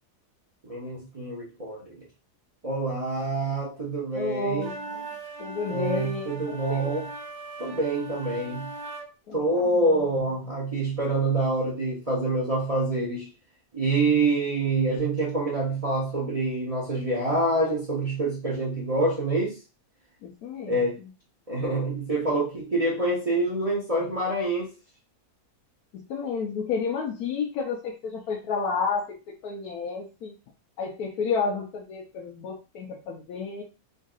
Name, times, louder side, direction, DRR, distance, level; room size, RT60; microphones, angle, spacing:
voice 1, 0.6-2.0 2.6-4.7 5.7-7.1 7.6-8.7 9.3-13.3 13.7-19.6 20.7-21.0 21.5-24.8, right 2 dB, 35° right, 0.7 m, -26 dB
voice 2, 4.1-5.0 5.4-7.0 9.3-10.1 20.2-20.9 25.9-29.2 29.4-30.3 30.8-33.6, left 5 dB, 85° left, 1.2 m, -31 dB
sound 1, 4.6-9.1, right 2 dB, 60° right, 1.1 m, -39 dB
3.9 x 2.6 x 2.3 m
omnidirectional pair, 1.6 m